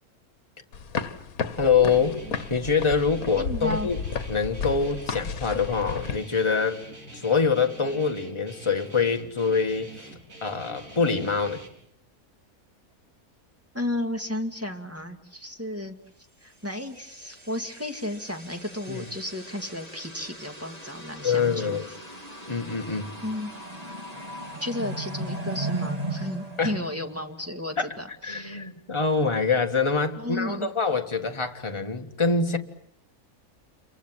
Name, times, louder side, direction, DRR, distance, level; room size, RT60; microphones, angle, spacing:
sound 1, 0.7-6.2, left 5 dB, 70° left, 1.8 m, -33 dB
voice 1, 1.6-2.2 2.5-4.0 4.3-6.8 7.1-10.1 10.4-11.6 18.9-19.0 21.2-21.9 22.5-23.2 26.6-26.8 27.8-27.9 28.2-32.6, left 5 dB, 20° left, 1.7 m, -25 dB
Guitar, 1.9-11.7, right 1 dB, 60° right, 4.5 m, -45 dB
voice 2, 3.4-3.9 13.7-16.0 16.4-21.8 23.2-23.5 24.6-28.7 30.2-30.7, left 1 dB, 10° right, 2.2 m, -33 dB
sound 2, 16.8-27.5, right 2 dB, 25° right, 3.1 m, -37 dB
29.0 x 24.0 x 7.6 m
omnidirectional pair, 1.6 m